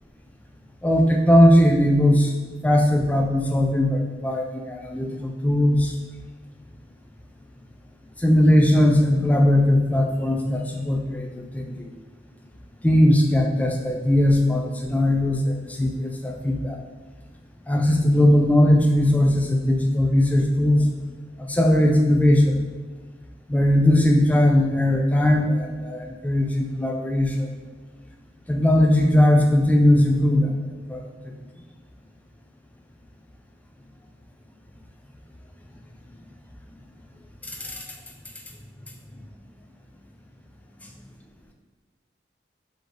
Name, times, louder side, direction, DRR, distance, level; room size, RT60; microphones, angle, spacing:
voice 1, 0.8-2.3 2.6-5.9 8.2-11.3 11.5-11.9 12.8-16.8 17.7-20.8 21.4-22.6 23.5-27.5 28.5-30.5 30.9-31.0 37.6-37.8, left 1 dB, 10° left, 2 dB, 0.3 m, -19 dB
4.2 x 2.9 x 3.3 m, 1.3 s
head